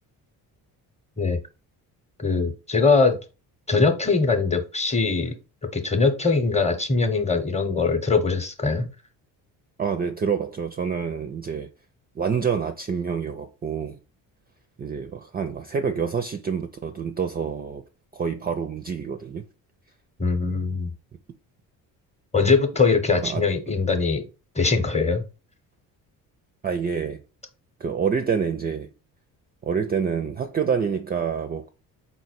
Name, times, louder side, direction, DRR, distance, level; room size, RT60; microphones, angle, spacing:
voice 1, 2.2-3.2 3.7-5.3 5.7-8.9 20.2-20.9 22.3-24.2 24.5-25.2, left 4 dB, 15° left, 0.8 m, -22 dB
voice 2, 9.8-11.7 12.2-14.0 14.8-17.8 18.1-19.4 23.2-23.8 26.6-27.2 27.8-28.9 29.6-31.7, right 6 dB, 25° right, 0.4 m, -27 dB
4.2 x 2.1 x 4.2 m
supercardioid pair, 65°, 42 cm